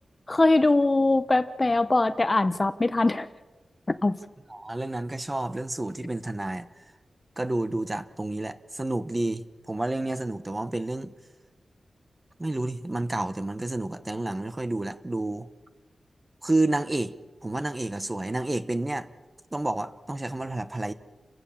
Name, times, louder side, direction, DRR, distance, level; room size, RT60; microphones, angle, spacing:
voice 1, 0.3-3.3 4.0-4.2, left 2 dB, 25° left, 0.8 m, -22 dB
voice 2, 4.5-6.7 7.4-11.1 12.4-15.5 16.4-17.1 17.4-19.1 19.5-20.9, right 2 dB, 20° right, 0.9 m, -30 dB
30.0 x 15.5 x 7.3 m
wide cardioid pair, 150°, 0 cm